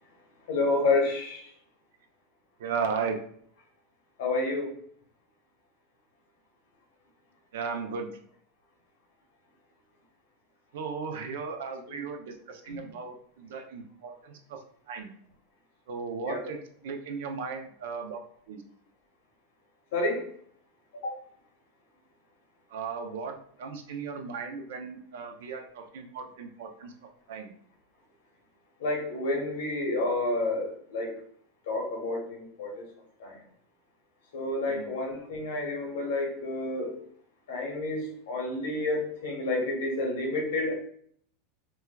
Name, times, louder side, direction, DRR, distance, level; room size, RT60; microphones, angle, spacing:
voice 1, 0.5-1.5 4.2-4.7 11.9-12.0 12.7-12.8 16.2-16.4 19.9-20.3 21.0-21.2 28.8-31.1 31.7-32.8 33.2-33.3 34.3-37.0 37.5-40.7, left 2 dB, 80° left, 1 dB, 1.0 m, -29 dB
voice 2, 2.6-3.2 7.5-8.2 10.7-15.1 15.9-18.2 18.5-18.6 22.7-27.5 34.7-34.9, right 5 dB, 80° right, 5 dB, 0.5 m, -36 dB
4.2 x 2.2 x 2.3 m, 0.62 s
supercardioid pair, 130°, 0 cm